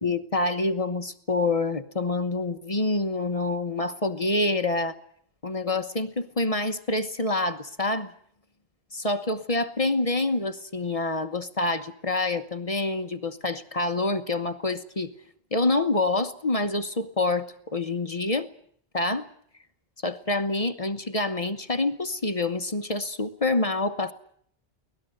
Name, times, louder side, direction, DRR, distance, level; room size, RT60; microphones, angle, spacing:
voice 1, 0.0-4.9 5.4-8.1 8.9-15.1 15.5-18.5 18.9-19.3 20.0-24.1, left 2 dB, 35° left, 9 dB, 1.1 m, -27 dB
24.0 x 18.0 x 7.8 m, 0.62 s
omnidirectional pair, 1.1 m